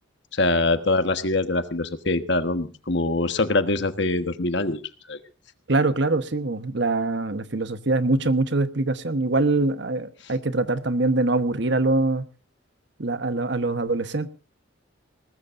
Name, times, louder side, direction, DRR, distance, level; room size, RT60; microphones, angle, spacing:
voice 1, 0.3-4.8 5.1-5.2, left 2 dB, 60° left, 1.4 m, -23 dB
voice 2, 5.7-12.3 13.0-14.3, right 2 dB, 55° right, 1.2 m, -23 dB
20.5 x 19.5 x 2.6 m
head